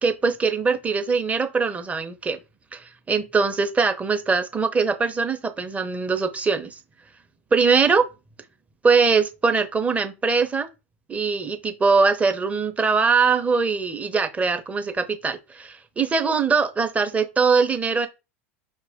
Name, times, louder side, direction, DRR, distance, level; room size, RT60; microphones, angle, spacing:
voice 1, 0.0-2.4 2.7-6.8 7.5-8.0 8.8-10.7 11.1-18.1, right 4 dB, 20° right, 0.8 m, -22 dB
5.9 x 2.4 x 3.5 m
hypercardioid pair, 85°, 8 cm